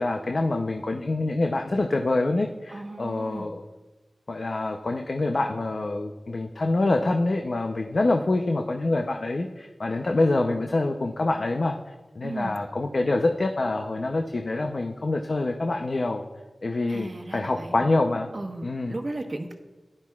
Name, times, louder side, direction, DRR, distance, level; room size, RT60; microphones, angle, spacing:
voice 1, 0.0-3.6 4.3-16.2 16.6-18.3 18.6-18.9, left 2 dB, 60° left, 3 dB, 0.6 m, -26 dB
voice 2, 2.7-3.5 12.2-12.6 16.9-17.8 18.3-19.5, right 2 dB, 45° right, 3 dB, 1.2 m, -35 dB
14.5 x 11.0 x 2.4 m, 1.2 s
wide cardioid pair, 65°, 0 cm